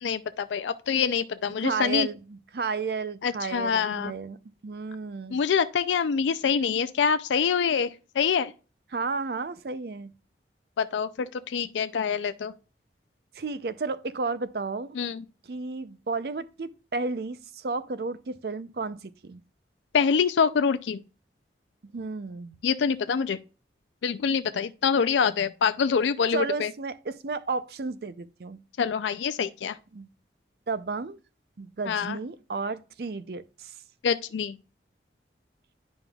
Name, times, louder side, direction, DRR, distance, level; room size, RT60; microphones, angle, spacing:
voice 1, 0.0-2.1 3.2-4.1 5.3-8.5 10.8-12.5 15.0-15.2 19.9-21.0 22.6-23.4 24.0-26.7 28.8-29.8 31.9-32.2 34.0-34.6, left 6 dB, 85° left, 0.4 m, -25 dB
voice 2, 1.6-4.4 4.6-5.4 8.9-10.1 13.3-15.0 15.5-19.4 21.9-22.6 26.3-28.6 29.9-30.1 30.7-31.2 31.6-33.7, right 4 dB, 60° right, 0.5 m, -32 dB
10.5 x 5.3 x 2.3 m
head